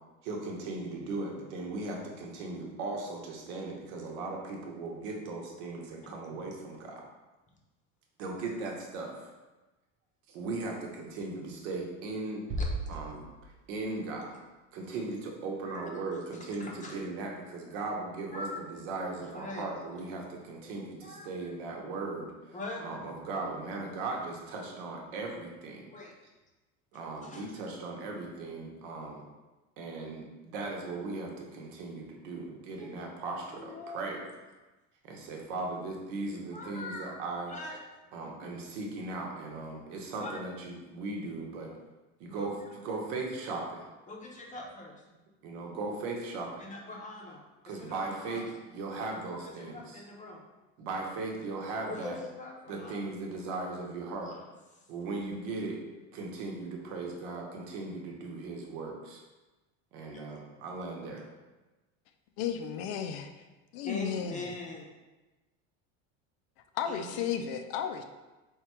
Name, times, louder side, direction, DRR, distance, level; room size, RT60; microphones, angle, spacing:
voice 1, 0.2-7.0 8.2-9.3 10.3-12.4 12.9-14.4 14.7-25.9 26.9-29.2 29.8-34.3 35.0-37.5 38.1-41.7 42.2-43.9 45.4-47.0 47.6-50.0 50.8-52.2 52.7-54.3 54.9-55.8 56.1-59.2 59.9-61.3, right 3 dB, 75° right, 0 dB, 1.0 m, -38 dB
sound 1, 12.5-13.9, right 1 dB, 40° right, 0.5 m, -35 dB
voice 2, 12.6-13.0 15.6-15.9 16.6-17.0 18.3-18.6 19.2-19.6 20.6-20.7 21.0-21.3 22.5-22.8 25.9-26.1 26.9-27.5 32.7-33.0 33.3-34.0 36.5-37.8 39.1-39.2 40.2-40.4 42.2-42.5 44.1-44.9 46.6-48.6 49.3-50.4 51.9-53.1 54.2-54.4 63.8-64.9 66.9-67.2, left 2 dB, 20° left, 0 dB, 0.6 m, -43 dB
voice 3, 62.4-63.4 63.7-64.5 66.7-68.0, left 8 dB, 65° left, 7 dB, 0.5 m, -34 dB
3.6 x 2.3 x 4.2 m, 1.1 s
supercardioid pair, 120°, 37 cm